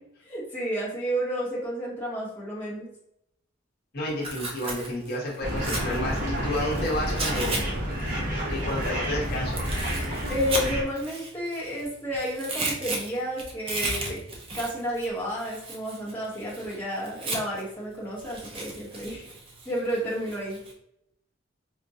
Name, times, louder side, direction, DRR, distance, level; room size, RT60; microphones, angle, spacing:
voice 1, 0.2-2.9 10.3-14.2 14.5-19.3 19.6-20.6, equal, 10° left, -6 dB, 0.9 m, -31 dB
voice 2, 3.9-7.7 8.5-9.6, left 1 dB, 50° left, -3 dB, 0.9 m, -30 dB
Tearing, 4.1-7.6 7.9-11.8 12.1-17.7 18.2-20.7, right 2 dB, 25° right, 0.5 m, -35 dB
sound 1, 5.4-10.8, equal, 45° right, 0.9 m, -29 dB
4.6 x 2.2 x 2.6 m, 0.77 s
head